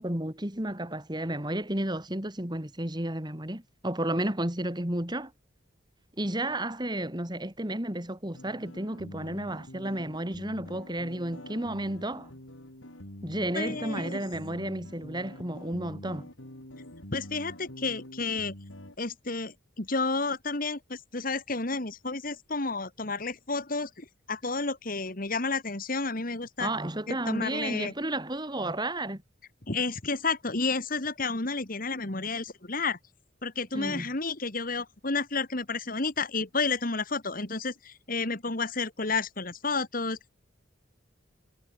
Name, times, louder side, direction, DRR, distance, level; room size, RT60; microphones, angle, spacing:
voice 1, 0.0-5.3 6.2-12.3 13.2-16.3 26.6-29.2 33.7-34.1, right 1 dB, 20° right, 2.8 m, -32 dB
sound 1, 8.3-19.0, left 1 dB, 80° left, 5.9 m, -46 dB
voice 2, 13.5-14.2 17.1-18.5 19.0-26.7 27.1-27.9 29.7-33.0 33.4-40.2, left 3 dB, 45° left, 2.1 m, -31 dB
head